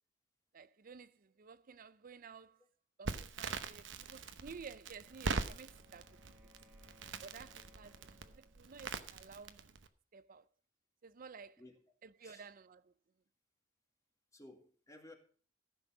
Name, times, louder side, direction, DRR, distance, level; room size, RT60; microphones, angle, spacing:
voice 1, 0.5-2.6 3.0-6.2 7.2-9.7 10.1-10.4 11.0-11.6 12.0-12.9, right 5 dB, 50° right, 0.5 m, -53 dB
Crackle, 3.1-9.9, right 4 dB, 85° right, 0.9 m, -43 dB
Wind instrument woodwind instrument, 4.9-8.7, left 2 dB, 15° right, 1.9 m, -66 dB
voice 2, 14.3-15.2, left 1 dB, 20° left, 1.9 m, -56 dB
14.5 x 6.2 x 6.0 m
head